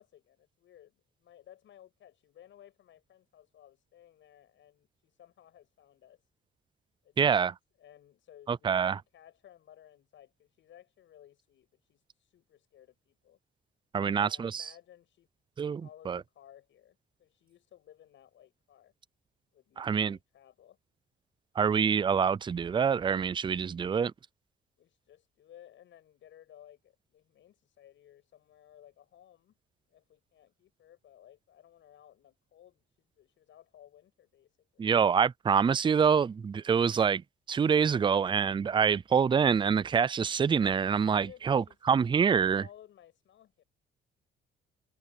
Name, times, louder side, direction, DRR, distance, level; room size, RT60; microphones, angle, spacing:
voice 1, 0.0-6.2 7.0-7.4 7.8-13.4 14.0-15.3 15.8-18.9 19.5-20.8 24.8-29.6 29.9-34.9 41.1-41.8 42.2-43.6, left 11 dB, 70° left, 7.5 m, -57 dB
voice 2, 7.2-7.5 8.5-9.0 13.9-14.7 15.6-16.2 19.8-20.2 21.6-24.1 34.8-37.2 37.5-42.6, right 6 dB, 25° right, 0.4 m, -26 dB
cardioid pair, 90°, 20 cm